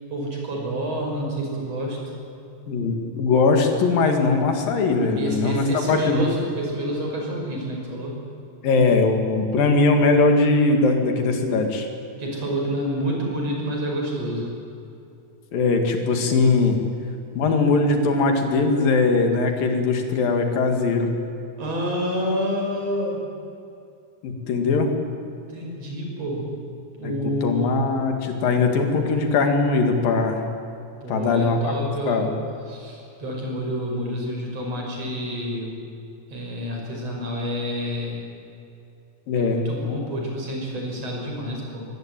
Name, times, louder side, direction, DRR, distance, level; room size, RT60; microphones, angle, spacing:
voice 1, 0.1-2.0 5.2-8.2 12.2-14.5 21.6-23.3 25.5-26.5 27.0-27.8 31.0-32.3 32.7-35.7 36.3-38.2 39.4-41.9, equal, 45° right, 0 dB, 6.5 m, -28 dB
voice 2, 2.7-6.2 8.6-11.9 15.5-16.8 17.4-21.1 24.2-24.9 27.0-27.1 27.4-30.4 31.1-31.7 32.1-32.3 39.3-39.6, left 3 dB, 85° left, 4 dB, 4.0 m, -20 dB
23.0 x 18.5 x 9.1 m, 2.7 s
omnidirectional pair, 3.9 m